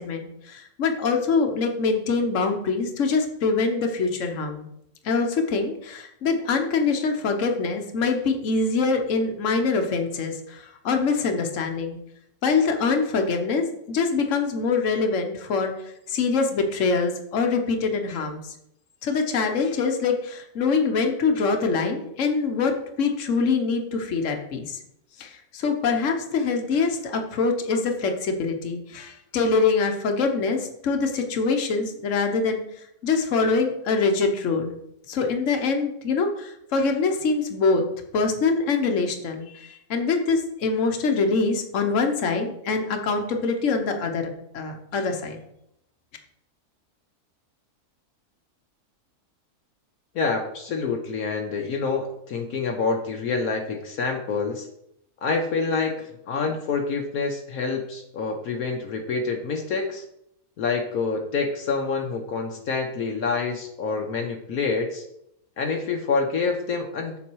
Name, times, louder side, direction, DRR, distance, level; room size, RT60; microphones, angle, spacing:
voice 1, 0.0-4.7 5.0-12.0 12.4-15.7 16.1-18.5 19.0-24.8 25.2-32.6 33.0-34.8 35.1-37.8 38.1-44.3 44.5-45.4, left 4 dB, 60° left, 4 dB, 1.4 m, -24 dB
voice 2, 50.1-54.7 55.2-60.0 60.6-65.0 65.6-67.2, left 4 dB, 75° left, 2 dB, 1.3 m, -27 dB
7.3 x 7.0 x 4.7 m, 0.76 s
omnidirectional pair, 1.6 m